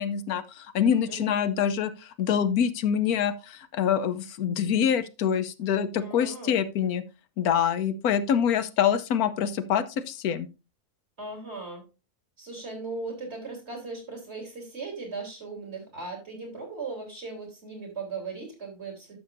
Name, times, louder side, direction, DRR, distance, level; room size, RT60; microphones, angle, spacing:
voice 1, 0.0-7.0 7.4-10.5, left 8 dB, 80° left, 13 dB, 1.2 m, -25 dB
voice 2, 6.0-6.6 11.2-11.8 12.4-19.2, right 3 dB, 45° right, 1 dB, 4.0 m, -38 dB
12.0 x 7.0 x 2.6 m, 0.28 s
omnidirectional pair, 1.5 m